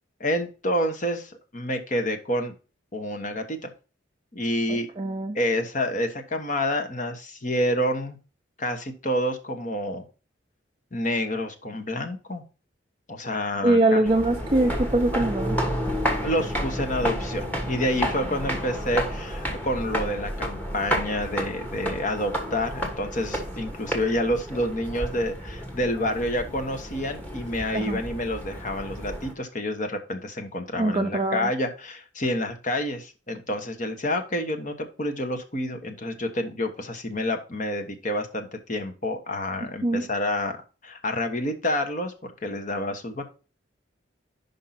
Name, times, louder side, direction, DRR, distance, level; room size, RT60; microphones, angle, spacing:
voice 1, 0.2-2.5 2.9-3.7 4.3-4.9 5.3-8.2 8.6-10.0 10.9-12.4 13.1-14.0 16.2-40.6 40.8-43.4, left 1 dB, 40° left, 5 dB, 1.2 m, -28 dB
voice 2, 4.7-5.4 13.6-15.6 27.7-28.0 30.8-31.5 39.8-40.1, right 2 dB, 30° right, 3 dB, 0.5 m, -23 dB
sound 1, 14.1-29.3, equal, 10° left, 1.3 m, -31 dB
5.5 x 5.3 x 5.8 m, 0.34 s
head